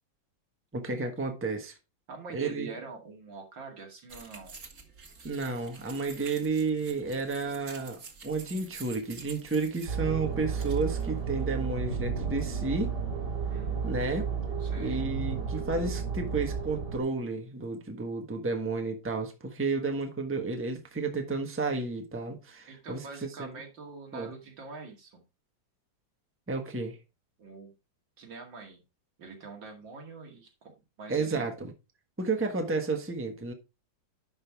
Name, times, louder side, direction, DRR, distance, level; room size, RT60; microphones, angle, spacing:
voice 1, 0.7-1.7 2.3-2.7 5.2-12.9 13.8-14.3 14.8-23.5 24.1-24.3 26.5-27.0 31.1-31.7 32.2-33.5, right 3 dB, 10° right, 1.1 m, -32 dB
voice 2, 2.1-4.6 13.5-13.9 14.6-15.1 19.6-19.7 22.7-25.2 27.4-27.7 28.2-28.8 29.2-30.7 31.0-31.5, right 4 dB, 80° right, 2.9 m, -45 dB
sound 1, 4.1-11.6, right 5 dB, 45° right, 1.9 m, -49 dB
sound 2, 9.9-17.0, right 6 dB, 65° right, 2.9 m, -32 dB
10.5 x 5.5 x 3.5 m
omnidirectional pair, 2.0 m